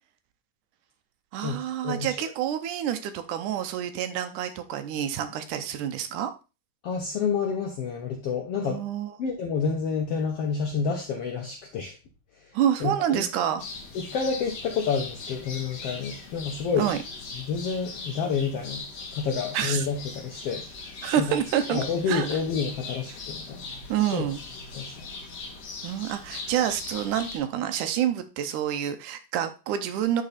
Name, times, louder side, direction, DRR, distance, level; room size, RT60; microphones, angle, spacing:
voice 1, 1.3-6.3 8.6-9.1 12.5-13.6 16.8-17.0 19.5-19.8 21.0-21.8 22.1-22.3 23.9-24.4 25.8-30.2, right 10 dB, 75° right, 9 dB, 2.0 m, -28 dB
voice 2, 1.8-2.2 6.8-8.8 9.2-12.0 12.8-13.3 13.9-16.9 17.4-18.8 19.1-20.6 21.2-21.4 21.7-23.7 24.1-24.3 24.7-25.1, left 5 dB, 85° left, 2 dB, 1.3 m, -29 dB
sound 1, 13.6-27.4, left 3 dB, 55° left, 2.4 m, -40 dB
10.5 x 3.9 x 4.0 m, 0.31 s
omnidirectional pair, 4.0 m